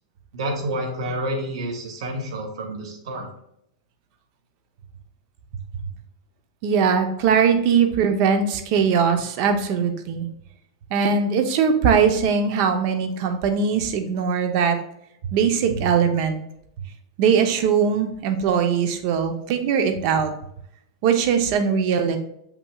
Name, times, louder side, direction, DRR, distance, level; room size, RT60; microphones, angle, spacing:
voice 1, 0.3-3.3, right 1 dB, 75° right, 1 dB, 2.1 m, -29 dB
voice 2, 6.6-10.2 10.9-14.8 15.3-16.4 17.2-20.3 21.0-22.2, right 6 dB, 40° right, 6 dB, 0.7 m, -20 dB
6.9 x 5.9 x 2.3 m, 0.75 s
supercardioid pair, 170°, 3 cm